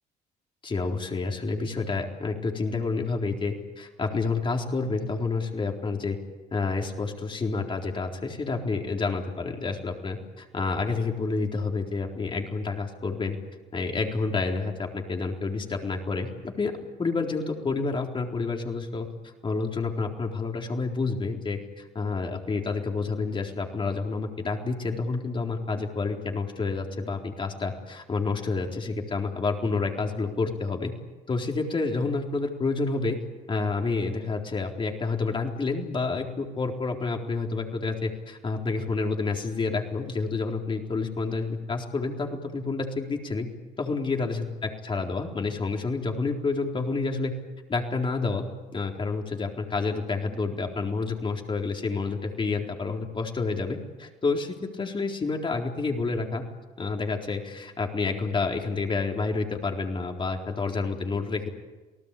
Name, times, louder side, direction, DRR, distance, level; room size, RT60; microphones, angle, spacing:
voice 1, 0.6-6.2 6.5-13.4 13.7-16.7 17.0-19.1 19.4-30.9 31.3-33.2 33.5-43.5 43.8-47.3 47.7-48.5 48.7-56.4 56.8-61.5, left 4 dB, 30° left, 2 dB, 4.1 m, -29 dB
28.5 x 18.5 x 8.6 m, 1.2 s
cardioid pair, 110°, 17 cm